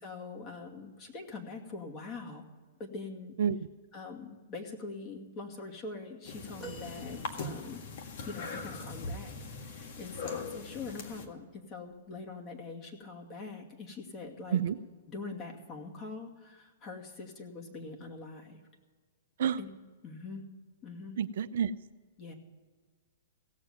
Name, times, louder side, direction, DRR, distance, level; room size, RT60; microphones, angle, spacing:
voice 1, 0.0-2.4 2.8-3.4 3.9-7.8 8.3-14.6 15.1-18.6 19.6-19.7 20.0-20.4 20.8-21.2 22.2-22.3, left 3 dB, 30° left, 1 dB, 2.3 m, -43 dB
sound 1, 6.2-11.3, left 4 dB, 60° left, 1.7 m, -41 dB
sound 2, 6.6-8.0 10.4-10.6 11.9-12.0, right 4 dB, 10° left, 1.6 m, -49 dB
voice 2, 21.2-21.7, right 8 dB, 65° right, 12 dB, 0.5 m, -28 dB
16.5 x 7.3 x 9.4 m, 1.5 s
hypercardioid pair, 125°, 0 cm